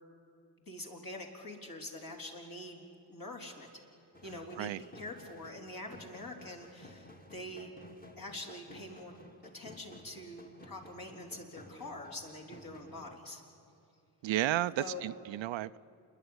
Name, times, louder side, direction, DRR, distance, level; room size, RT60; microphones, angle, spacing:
voice 1, 0.7-2.8 3.1-3.7 4.2-7.7 8.2-9.1 9.5-13.4 14.8-15.1, left 1 dB, 45° left, 1 dB, 4.1 m, -45 dB
sound 1, 4.1-13.3, left 1 dB, 20° left, 2.2 m, -54 dB
voice 2, 14.2-15.8, right 14 dB, 65° right, 15 dB, 0.6 m, -32 dB
27.5 x 11.0 x 9.9 m, 2.5 s
supercardioid pair, 50°, 50 cm